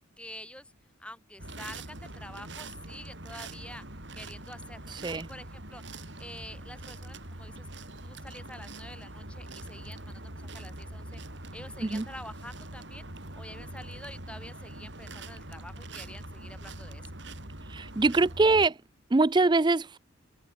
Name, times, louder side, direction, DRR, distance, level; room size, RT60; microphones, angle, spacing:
voice 1, 0.2-0.7 1.0-3.8 4.1-5.8 6.2-7.7 8.0-11.2 11.5-13.1 13.3-17.1, left 1 dB, 5° left, 3.0 m, -47 dB
sound 1, 1.4-18.7, right 2 dB, 60° right, 6.0 m, -43 dB
voice 2, 17.7-18.8 19.1-20.0, right 3 dB, 20° right, 0.4 m, -23 dB
open air
head